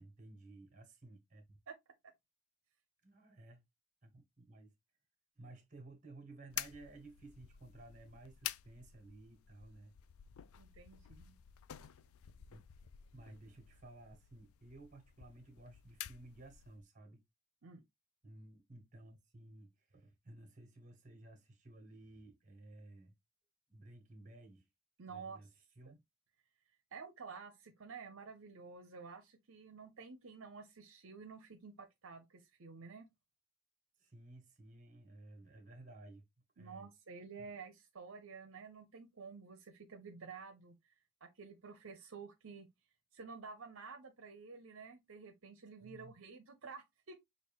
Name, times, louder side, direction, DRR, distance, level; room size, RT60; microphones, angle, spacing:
voice 1, 0.0-1.6 3.0-3.6 4.0-4.7 5.3-9.9 12.5-12.6 13.1-17.2 18.2-23.2 23.7-24.7 25.1-25.5 25.7-26.0 34.0-36.3 36.6-36.9 37.4-37.5 45.8-46.2, right 2 dB, 35° right, 1.4 m, -56 dB
sound 1, 6.5-16.8, left 12 dB, 80° left, 0.4 m, -50 dB
voice 2, 10.6-11.3 17.6-17.8 25.0-25.4 25.9-26.0 26.9-33.1 36.6-40.8 41.2-42.7 43.1-47.2, right 5 dB, 70° right, 0.7 m, -51 dB
5.9 x 2.4 x 3.5 m
head